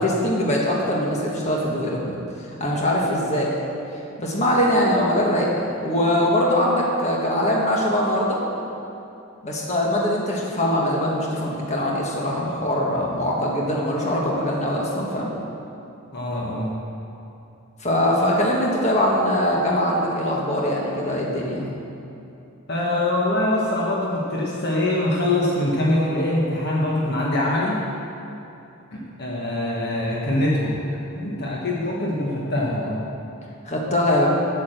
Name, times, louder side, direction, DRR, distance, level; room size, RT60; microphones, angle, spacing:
voice 1, 0.0-2.2 2.6-3.5 4.2-5.5 5.8-8.4 9.4-15.3 17.8-21.6 33.7-34.3, left 1 dB, 30° left, -3 dB, 1.5 m, -22 dB
voice 2, 16.1-16.8 22.7-27.8 28.9-30.8 31.1-33.0, left 1 dB, 50° left, -4 dB, 1.3 m, -23 dB
8.7 x 8.2 x 6.7 m, 2.8 s
head